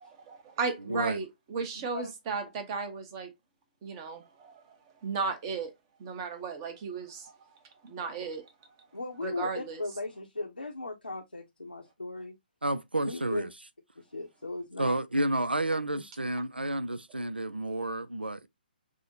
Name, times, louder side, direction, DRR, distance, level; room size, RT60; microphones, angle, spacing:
voice 1, 0.0-3.3 3.8-4.6 5.0-5.7 6.0-7.3 7.8-8.5 9.2-9.8, right 5 dB, 25° right, 0.8 m, -35 dB
voice 2, 0.9-1.2 12.6-13.5 14.8-18.5, right 1 dB, 85° right, 0.4 m, -30 dB
voice 3, 8.9-12.3 13.1-13.5 14.0-15.0 15.9-16.0, left 2 dB, 80° left, 0.9 m, -37 dB
6.0 x 2.1 x 2.7 m
figure-of-eight pair, 135°, 5 cm